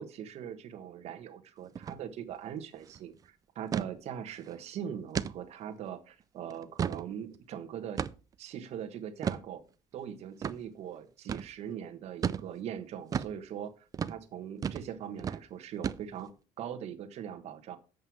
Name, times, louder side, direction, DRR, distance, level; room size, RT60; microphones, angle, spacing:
voice 1, 0.0-8.0 8.4-9.6 9.9-13.7 14.1-16.3 16.6-17.8, right 9 dB, 55° right, 7 dB, 1.3 m, -41 dB
sound 1, 1.8-2.0 2.3-2.4 2.7-3.0 3.7-3.9 4.4-4.5 5.1-5.4 5.9-6.0 6.5-7.1 8.0-8.3 9.2-9.4 10.4-10.6 11.3-11.5 12.2-12.5 13.1-13.4 13.9-14.2 14.6-14.9 15.2-15.4 15.8-16.3, right 7 dB, 25° right, 0.4 m, -33 dB
7.8 x 5.5 x 6.0 m, 0.35 s
cardioid pair, 140°, 13 cm